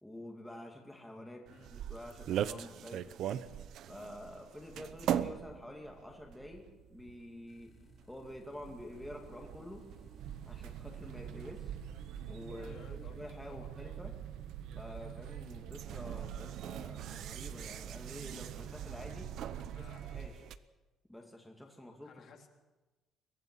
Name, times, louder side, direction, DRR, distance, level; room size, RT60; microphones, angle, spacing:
voice 1, 0.0-3.1 3.9-7.7 8.1-9.8 10.5-11.9 12.3-14.1 14.7-19.3 19.8-20.4 21.1-22.1, left 1 dB, 5° left, 1 dB, 2.3 m, -48 dB
sound 1, 1.5-20.6, right 10 dB, 65° right, 0.9 m, -43 dB
sound 2, 7.5-13.5, left 6 dB, 30° left, 1.7 m, -65 dB
sound 3, 10.2-20.3, right 9 dB, 90° right, 1.4 m, -45 dB
voice 2, 12.5-13.7 19.5-20.1 22.0-22.5, left 6 dB, 55° left, 2 dB, 3.5 m, -57 dB
23.0 x 17.0 x 7.5 m, 1.2 s
cardioid pair, 140°, 0 cm